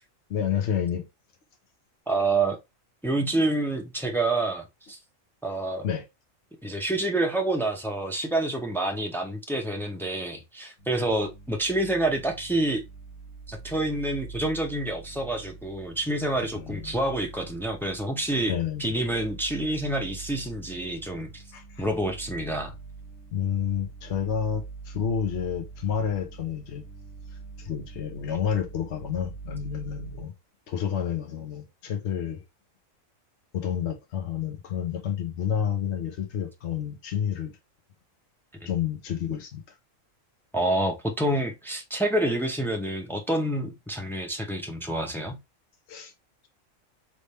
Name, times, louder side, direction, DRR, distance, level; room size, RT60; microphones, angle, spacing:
voice 1, 0.3-1.0 5.8-6.0 16.5-16.9 18.5-18.9 21.5-21.9 23.3-26.8 27.6-30.3 30.7-32.4 33.5-37.5 38.6-39.8 45.9-46.1, left 8 dB, 60° left, 1.0 m, -30 dB
voice 2, 2.1-2.6 3.0-5.0 5.4-5.9 6.6-12.8 13.5-18.5 18.8-21.4 21.8-22.7 40.5-45.4, right 2 dB, 5° left, 0.3 m, -28 dB
sound 1, 10.8-30.3, right 4 dB, 45° left, 1.8 m, -44 dB
3.4 x 3.2 x 4.0 m
omnidirectional pair, 1.4 m